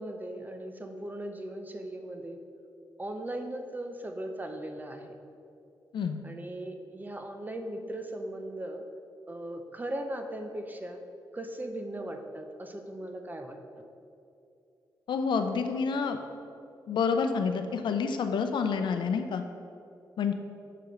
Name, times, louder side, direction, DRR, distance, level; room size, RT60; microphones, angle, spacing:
voice 1, 0.0-2.4 3.0-5.1 6.2-8.8 9.3-11.0 11.3-13.6, right 1 dB, 20° right, 5 dB, 0.7 m, -38 dB
voice 2, 15.1-16.2 16.9-19.4 20.2-20.3, left 5 dB, 80° left, 7 dB, 0.6 m, -28 dB
6.8 x 4.8 x 6.1 m, 2.6 s
cardioid pair, 100°, 8 cm